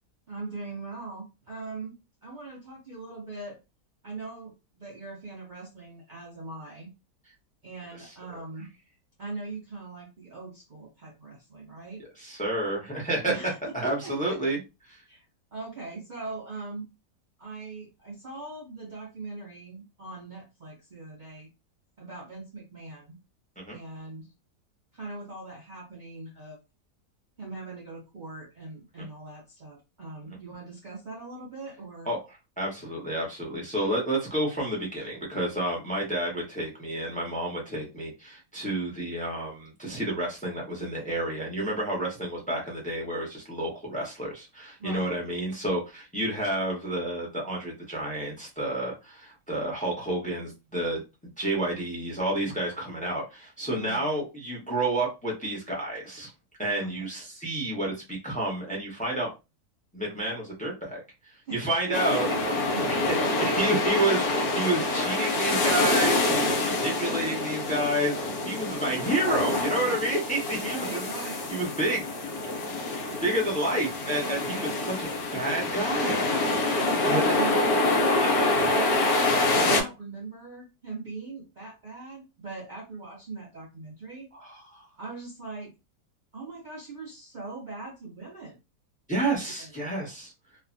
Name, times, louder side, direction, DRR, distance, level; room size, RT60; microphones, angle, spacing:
voice 1, 0.3-1.9 2.2-3.6 4.0-6.9 7.6-8.7 9.2-12.0 13.3-14.4 15.1-15.3 15.5-16.9 17.4-21.5 22.0-23.2 23.7-24.3 24.9-26.6 27.4-32.1 44.8-45.1 53.8-54.0 56.8-57.1 61.5-63.3 70.6-71.4 74.4-74.7 76.8-77.6 78.4-84.3 85.0-85.7 86.3-88.6 89.5-89.9, right 3 dB, 75° right, -2 dB, 0.4 m, -41 dB
voice 2, 12.2-13.3 13.7-14.6 14.9-15.0 23.6-23.8 32.1-32.2 32.6-51.0 51.4-56.3 56.6-59.3 59.9-61.0 61.5-62.3 62.9-63.0 63.4-68.2 68.5-71.1 71.5-72.0 73.2-75.1 75.3-76.3 77.0-77.2 78.2-78.7 84.3-84.8 89.1-90.3, right 1 dB, 5° left, -2 dB, 0.6 m, -30 dB
sound 1, 61.9-79.8, left 2 dB, 70° left, 1.3 m, -26 dB
3.1 x 2.2 x 2.5 m, 0.26 s
omnidirectional pair, 1.8 m